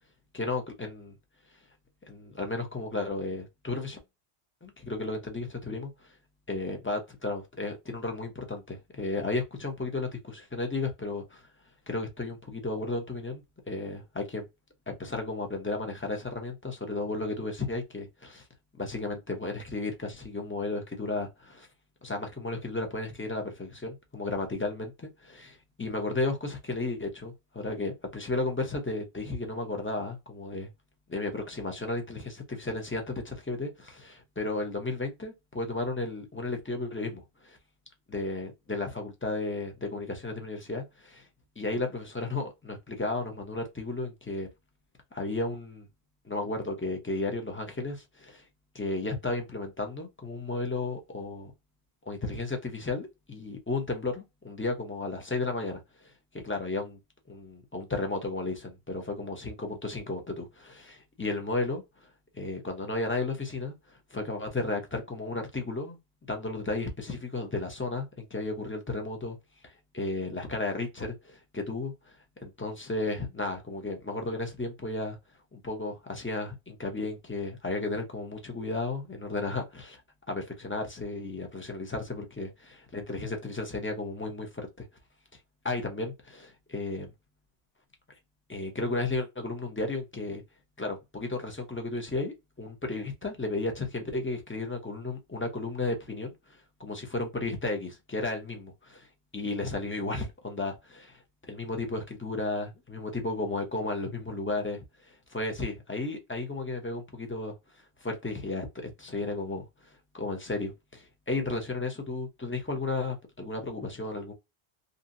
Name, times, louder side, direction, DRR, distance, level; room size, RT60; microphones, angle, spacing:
voice 1, 0.3-1.1 2.1-4.0 4.6-6.1 6.5-11.4 11.9-14.4 14.9-18.4 18.8-21.7 22.0-30.7 31.1-37.6 38.1-41.3 41.6-44.5 45.1-45.9 46.2-48.4 48.7-51.5 52.1-57.0 57.3-61.8 62.3-66.0 66.3-69.4 69.6-72.2 72.4-75.2 75.5-80.0 80.3-84.9 85.6-87.1 88.5-90.4 90.8-99.1 99.3-101.2 101.5-107.5 108.0-114.3, left 2 dB, 15° left, 0.4 m, -34 dB
2.7 x 2.6 x 2.5 m
omnidirectional pair, 1.1 m